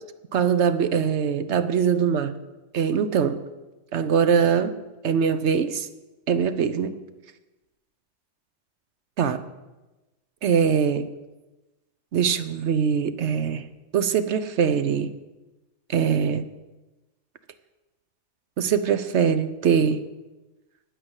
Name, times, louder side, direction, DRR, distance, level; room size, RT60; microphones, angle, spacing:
voice 1, 0.3-2.3 2.7-3.4 3.9-4.8 5.0-5.9 6.3-6.9 9.2-9.4 10.4-11.1 12.1-13.7 13.9-15.1 15.9-16.5 18.6-20.0, right 7 dB, 70° right, 11 dB, 1.1 m, -22 dB
9.4 x 9.3 x 8.1 m, 1.1 s
omnidirectional pair, 1.2 m